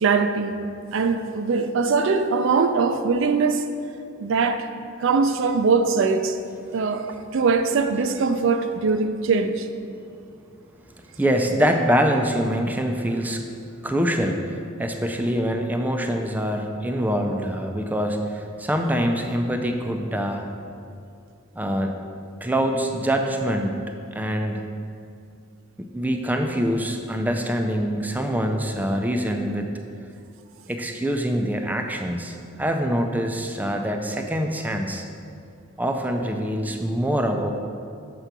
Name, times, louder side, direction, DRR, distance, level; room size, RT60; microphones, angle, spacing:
voice 1, 0.0-0.6 0.9-3.6 4.2-4.6 5.0-6.4 6.7-9.7, right 4 dB, 65° right, 8 dB, 0.4 m, -21 dB
voice 2, 11.2-13.4 13.8-20.5 21.6-21.9 22.4-23.8 24.1-24.7 25.8-29.8 30.7-35.0 35.8-37.5, equal, 10° right, 3 dB, 0.4 m, -24 dB
6.7 x 4.6 x 5.9 m, 2.4 s
head